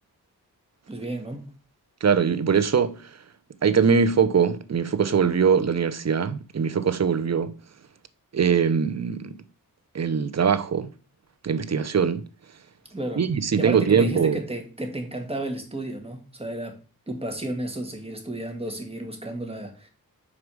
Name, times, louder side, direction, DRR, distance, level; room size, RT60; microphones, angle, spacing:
voice 1, 0.9-1.5 12.9-13.2 13.6-16.8 17.1-19.9, right 1 dB, 15° right, 2.1 m, -32 dB
voice 2, 2.0-3.1 3.6-7.6 8.3-9.4 9.9-10.9 11.4-12.2 13.2-14.4, right 6 dB, 45° right, 0.8 m, -22 dB
5.1 x 4.8 x 6.3 m
cardioid pair, 70°, 36 cm